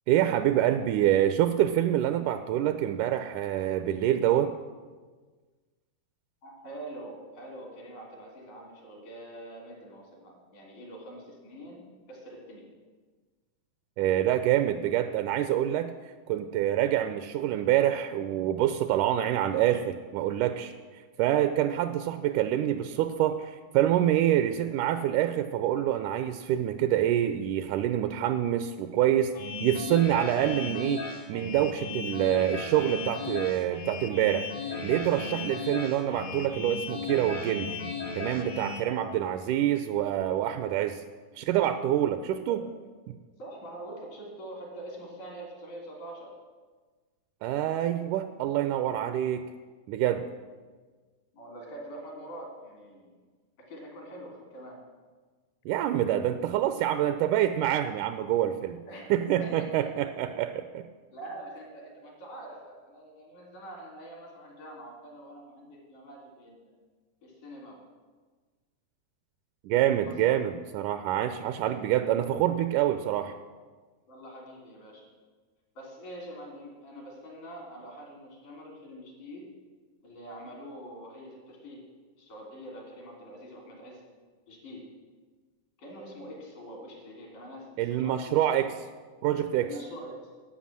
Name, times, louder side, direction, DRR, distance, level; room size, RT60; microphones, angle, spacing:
voice 1, 0.1-4.5 14.0-15.9 16.3-20.7 21.2-29.3 29.6-34.5 34.8-37.7 38.2-41.0 41.4-42.6 47.4-49.4 49.9-50.2 55.7-58.8 59.1-60.9 69.6-73.3 87.8-88.7 89.2-89.7, right 12 dB, 80° right, 10 dB, 2.0 m, -26 dB
voice 2, 6.4-12.7 21.6-21.8 38.8-39.1 42.4-42.6 43.4-46.3 50.0-50.2 51.3-53.2 53.6-54.8 58.9-59.1 59.4-59.8 61.1-66.7 67.2-67.8 69.9-70.4 74.1-75.1 75.8-79.5 80.0-81.8 82.2-84.0 84.5-84.9 85.8-88.6 89.6-90.3, right 1 dB, 75° left, -1 dB, 4.8 m, -44 dB
sound 1, 29.3-38.8, left 4 dB, 55° left, 0.9 m, -36 dB
11.5 x 8.8 x 7.4 m, 1.4 s
omnidirectional pair, 3.6 m